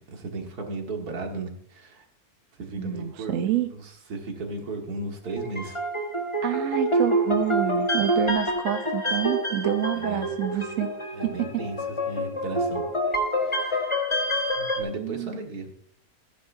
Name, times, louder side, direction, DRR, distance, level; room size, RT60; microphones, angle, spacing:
voice 1, 0.1-2.0 2.5-5.8 9.9-10.6 11.1-12.8 13.4-14.0 14.5-15.7, right 3 dB, 85° right, 3 dB, 2.2 m, -36 dB
voice 2, 2.8-3.7 6.4-10.9 11.2-11.6 15.0-15.3, right 12 dB, 65° right, 8 dB, 1.0 m, -28 dB
sound 1, 5.2-14.8, equal, 20° left, 1.4 m, -27 dB
15.5 x 9.6 x 2.7 m, 0.65 s
omnidirectional pair, 1.6 m